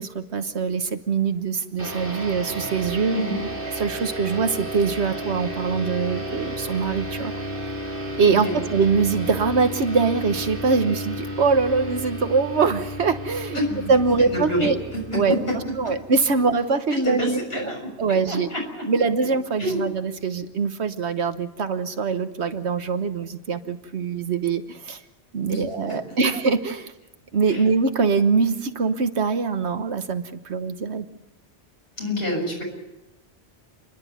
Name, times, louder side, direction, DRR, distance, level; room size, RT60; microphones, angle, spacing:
voice 1, 0.0-3.2 3.8-7.3 8.2-13.6 13.9-14.7 15.1-15.4 15.8-17.6 18.0-18.5 18.9-25.0 25.3-26.9 27.3-31.0, right 4 dB, 75° right, 9 dB, 1.4 m, -23 dB
sound 1, 1.8-16.6, equal, 50° right, 3.0 m, -33 dB
voice 2, 8.3-8.6 13.5-13.9 14.3-15.6 15.8-15.9 16.9-17.9 18.3-18.9 19.6-19.8 25.5-25.6 25.9-26.0 27.5-27.6 32.0-32.6, equal, 60° left, 0 dB, 6.9 m, -27 dB
29.5 x 11.5 x 9.4 m, 1.0 s
omnidirectional pair, 1.1 m